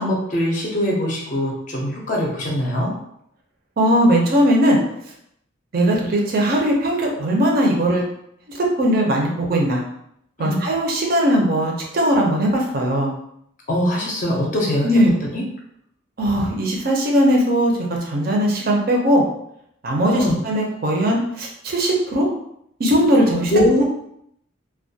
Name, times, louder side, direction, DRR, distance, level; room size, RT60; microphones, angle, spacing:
voice 1, 0.0-2.9 10.4-10.6 13.7-15.0 15.3-15.4 20.1-20.4 23.5-23.8, left 1 dB, 40° left, -2 dB, 0.4 m, -22 dB
voice 2, 3.8-4.8 5.7-8.0 8.5-9.8 10.4-13.1 14.8-15.1 16.2-17.7 18.0-19.2 19.8-22.3 22.8-23.5, equal, 50° right, 0 dB, 0.5 m, -19 dB
2.2 x 2.1 x 2.6 m, 0.74 s
head